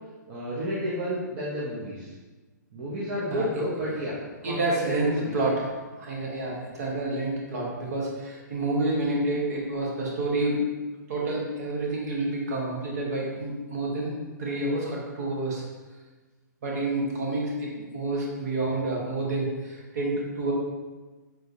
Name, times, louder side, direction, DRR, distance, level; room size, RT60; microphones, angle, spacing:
voice 1, 0.3-2.1 2.7-4.2 4.4-5.4 18.1-18.2, equal, 35° right, -8 dB, 0.6 m, -31 dB
voice 2, 4.4-5.7 6.0-10.6 11.1-14.1 14.4-15.6 16.6-20.5, right 2 dB, 55° right, -3 dB, 1.0 m, -28 dB
3.7 x 2.9 x 2.5 m, 1.3 s
hypercardioid pair, 165°, 10 cm